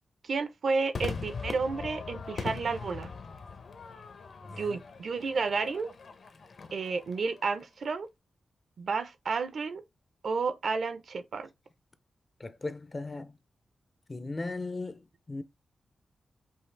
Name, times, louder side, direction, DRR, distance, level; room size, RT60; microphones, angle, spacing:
voice 1, 0.2-3.1 4.5-5.9 6.7-8.1 8.8-9.8 10.2-11.5, right 4 dB, 60° right, 0.6 m, -31 dB
Crowd / Fireworks, 0.9-7.5, left 5 dB, 60° left, 0.8 m, -41 dB
voice 2, 4.4-4.8 12.4-13.4 14.1-15.4, left 3 dB, 25° left, 0.4 m, -37 dB
5.5 x 2.4 x 3.2 m
wide cardioid pair, 130°, 0 cm